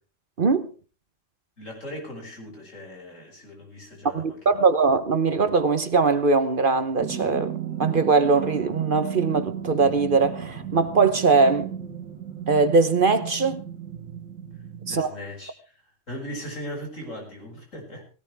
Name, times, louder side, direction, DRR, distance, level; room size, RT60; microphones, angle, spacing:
voice 1, 0.4-0.7 4.0-7.5 7.8-11.7 12.5-13.6 14.9-15.1, right 4 dB, 45° right, 1.1 m, -21 dB
voice 2, 1.6-4.7 14.5-15.7 16.1-18.0, equal, 80° left, 7.0 m, -39 dB
sound 1, 7.0-15.0, right 9 dB, 85° right, 2.4 m, -35 dB
18.0 x 18.0 x 3.5 m
omnidirectional pair, 1.3 m